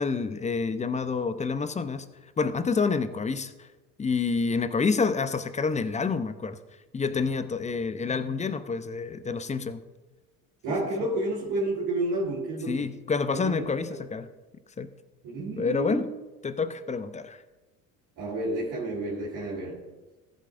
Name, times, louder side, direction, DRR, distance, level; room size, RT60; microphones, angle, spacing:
voice 1, 0.0-2.1 2.4-3.7 4.0-6.6 6.9-9.8 12.7-14.3 14.8-14.9 15.6-16.1 16.4-17.4, left 4 dB, 15° left, 12 dB, 0.6 m, -28 dB
voice 2, 10.6-12.9 13.4-13.6 13.9-14.0 15.2-16.0 18.2-19.8, right 2 dB, 55° right, -5 dB, 3.1 m, -30 dB
14.5 x 7.8 x 2.5 m, 1.2 s
hypercardioid pair, 75°, 43 cm